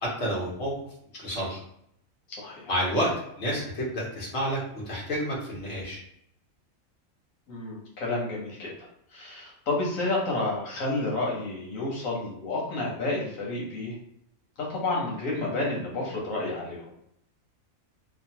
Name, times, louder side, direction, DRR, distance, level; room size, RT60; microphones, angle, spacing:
voice 1, 0.0-0.7 1.2-1.6 2.7-6.0, equal, 55° left, -5 dB, 1.2 m, -29 dB
voice 2, 2.3-2.7 7.5-8.7 9.1-13.9 14.6-16.9, left 2 dB, 80° left, -3 dB, 1.3 m, -30 dB
2.9 x 2.1 x 2.8 m, 0.74 s
omnidirectional pair, 1.4 m